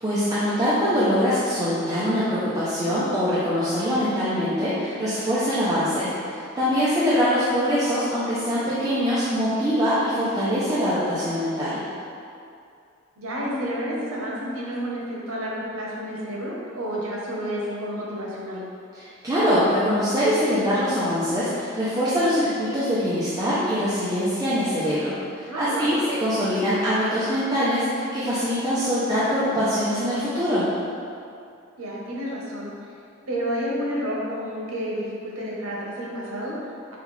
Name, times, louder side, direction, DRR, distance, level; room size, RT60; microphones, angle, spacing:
voice 1, 0.0-11.8 18.9-30.7, equal, 15° right, -11 dB, 0.5 m, -23 dB
voice 2, 13.2-18.6 25.4-26.0 31.8-32.7 33.3-37.0, equal, 85° right, -4 dB, 0.9 m, -30 dB
5.5 x 2.3 x 3.1 m, 2.4 s
head